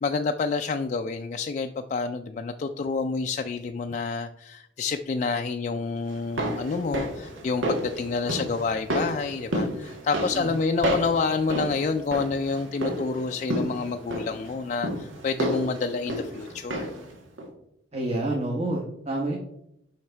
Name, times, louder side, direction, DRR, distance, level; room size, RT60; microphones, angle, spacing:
voice 1, 0.0-16.9, left 4 dB, 40° left, 5 dB, 0.3 m, -28 dB
sound 1, 6.1-17.1 17.4-17.5, right 1 dB, 90° right, 1.5 m, -31 dB
voice 2, 10.1-10.5 17.9-19.4, right 1 dB, 35° right, -2 dB, 1.1 m, -28 dB
6.1 x 5.7 x 4.4 m, 0.77 s
head